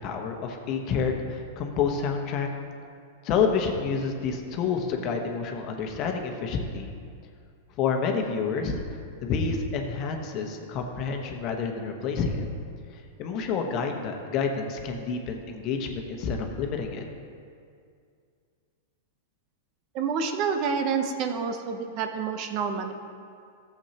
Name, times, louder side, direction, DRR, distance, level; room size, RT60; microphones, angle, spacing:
voice 1, 0.0-2.5 3.2-6.9 7.8-8.8 9.2-12.4 13.2-17.0, left 5 dB, 45° left, 3 dB, 1.1 m, -28 dB
voice 2, 19.9-23.0, right 6 dB, 45° right, 6 dB, 0.8 m, -28 dB
14.0 x 7.3 x 2.9 m, 2.3 s
hypercardioid pair, 115°, 0 cm